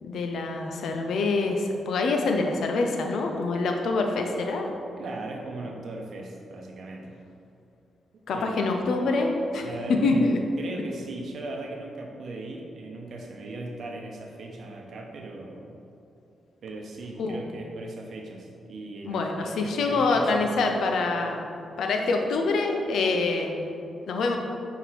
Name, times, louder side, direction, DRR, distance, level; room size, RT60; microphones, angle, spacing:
voice 1, 0.0-4.7 8.3-9.7 10.0-10.4 17.2-17.4 19.0-21.4 21.8-23.7 24.1-24.4, left 3 dB, 75° left, 3 dB, 0.6 m, -25 dB
voice 2, 5.0-7.1 8.3-8.6 9.6-10.3 10.6-15.7 16.6-20.5 21.2-21.3, right 2 dB, 65° right, 1 dB, 0.8 m, -38 dB
5.6 x 3.6 x 4.6 m, 2.7 s
supercardioid pair, 50°, 0 cm